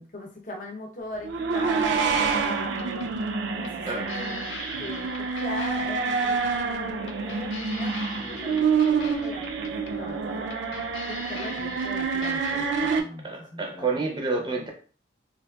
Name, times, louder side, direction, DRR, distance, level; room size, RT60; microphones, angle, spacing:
voice 1, 0.0-1.8 2.2-3.1 3.5-10.5 11.0-14.1 14.4-14.6, left 1 dB, 40° left, 0 dB, 0.8 m, -40 dB
sound 1, 1.2-13.0, right 5 dB, 70° right, 0.4 m, -27 dB
sound 2, 2.0-13.1, left 6 dB, 75° left, 0.4 m, -44 dB
voice 2, 13.2-14.7, right 3 dB, 25° right, 2 dB, 0.6 m, -29 dB
3.9 x 2.5 x 2.3 m, 0.40 s
head